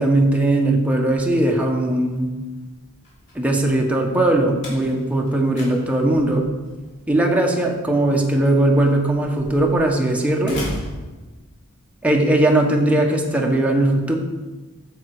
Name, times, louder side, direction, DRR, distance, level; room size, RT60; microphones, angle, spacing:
voice 1, 0.0-2.3 3.3-6.5 7.1-10.6 12.0-14.1, right 1 dB, 5° right, 1 dB, 1.2 m, -19 dB
Slam, 1.3-11.8, equal, 55° left, 3.4 m, -39 dB
9.7 x 7.3 x 4.9 m, 1.2 s
head